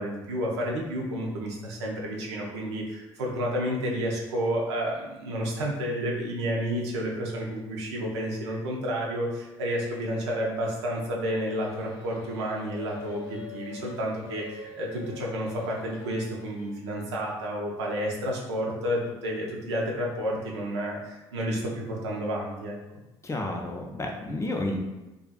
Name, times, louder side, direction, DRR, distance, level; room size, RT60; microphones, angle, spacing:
voice 1, 0.0-22.8, equal, 80° right, -2 dB, 0.5 m, -30 dB
sound 1, 11.4-16.7, left 6 dB, 80° left, 0.6 m, -45 dB
voice 2, 23.2-24.8, left 1 dB, 20° left, 1 dB, 0.5 m, -31 dB
2.4 x 2.4 x 2.3 m, 1.0 s
figure-of-eight pair, 50°, 14 cm